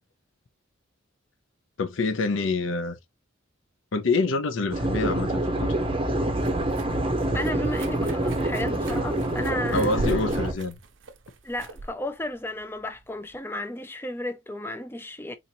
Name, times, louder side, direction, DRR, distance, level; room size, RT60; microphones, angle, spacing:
voice 1, 1.8-2.9 3.9-5.7 9.7-10.7, left 3 dB, 70° left, 0.5 m, -26 dB
sound 1, 4.7-10.5, right 1 dB, 25° right, 0.6 m, -26 dB
sound 2, 6.3-13.4, right 2 dB, 65° right, 0.6 m, -40 dB
voice 2, 7.3-9.9 11.4-15.3, left 1 dB, 10° left, 0.4 m, -33 dB
3.7 x 2.9 x 2.7 m
head